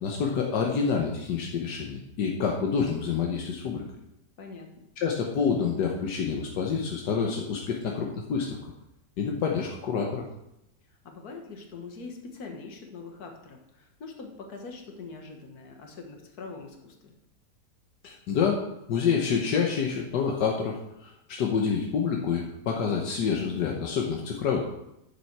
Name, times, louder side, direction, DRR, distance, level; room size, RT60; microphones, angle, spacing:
voice 1, 0.0-3.8 5.0-8.7 9.2-10.3 18.0-18.6 18.9-24.6, left 6 dB, 80° left, 0 dB, 1.6 m, -27 dB
voice 2, 4.4-4.9 11.0-17.1, left 4 dB, 65° left, 3 dB, 1.9 m, -43 dB
9.9 x 7.1 x 4.6 m, 0.85 s
omnidirectional pair, 1.8 m